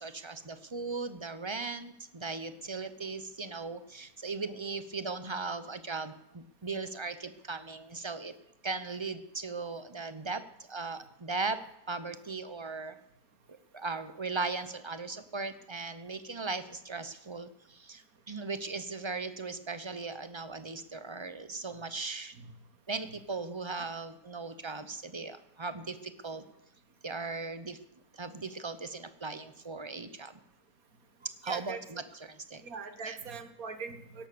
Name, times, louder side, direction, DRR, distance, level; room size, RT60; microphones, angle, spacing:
voice 1, 0.0-8.3 8.6-10.4 10.7-11.6 11.9-13.0 13.7-22.3 22.9-26.4 27.0-27.8 28.1-30.4 31.2-32.6 33.0-33.2, right 3 dB, 30° right, 11 dB, 0.5 m, -38 dB
voice 2, 31.5-31.8 32.6-34.3, right 5 dB, 55° right, 9 dB, 1.8 m, -41 dB
17.5 x 11.5 x 6.8 m, 0.82 s
omnidirectional pair, 1.8 m